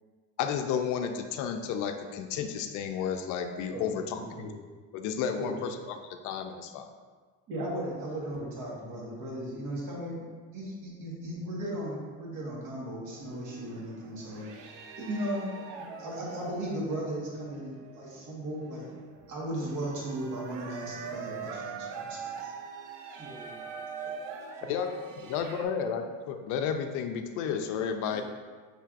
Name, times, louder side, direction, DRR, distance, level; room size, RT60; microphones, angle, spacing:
voice 1, 0.4-4.2 4.9-6.0 6.2-6.9 24.7-24.9 25.2-28.2, left 7 dB, 65° left, 6 dB, 0.4 m, -32 dB
voice 2, 3.7-4.5 5.4-5.7 7.5-10.2 10.5-14.5 15.0-15.5 15.8-18.9 19.3-22.5, right 1 dB, 55° right, -4 dB, 1.4 m, -36 dB
sound 1, 13.1-25.6, right 6 dB, 70° right, 0.6 m, -43 dB
voice 3, 23.2-24.8 28.0-28.2, right 2 dB, 10° right, -3 dB, 0.5 m, -51 dB
5.8 x 3.3 x 2.5 m, 1.5 s
cardioid pair, 130°, 34 cm